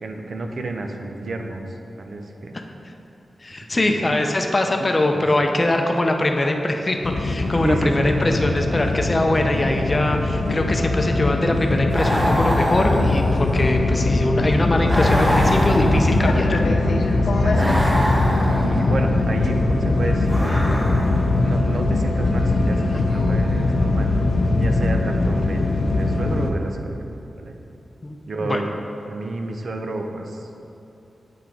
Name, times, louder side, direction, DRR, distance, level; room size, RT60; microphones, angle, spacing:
voice 1, 0.0-1.6 2.0-2.6 3.7-4.1 7.6-8.1 17.1-20.7 21.2-24.1 24.6-27.0 27.4-27.5 28.3-28.7 29.1-30.7, right 2 dB, 65° right, 4 dB, 0.5 m, -30 dB
voice 2, 3.4-16.6 28.0-28.6, left 1 dB, 30° left, 4 dB, 0.6 m, -22 dB
sound 1, 7.0-26.5, left 2 dB, 75° left, 0.5 m, -21 dB
sound 2, 11.9-13.7 14.9-16.4 17.5-18.9 20.2-21.3, equal, 10° right, 1.0 m, -25 dB
8.4 x 3.9 x 4.5 m, 2.8 s
wide cardioid pair, 80°, 0 cm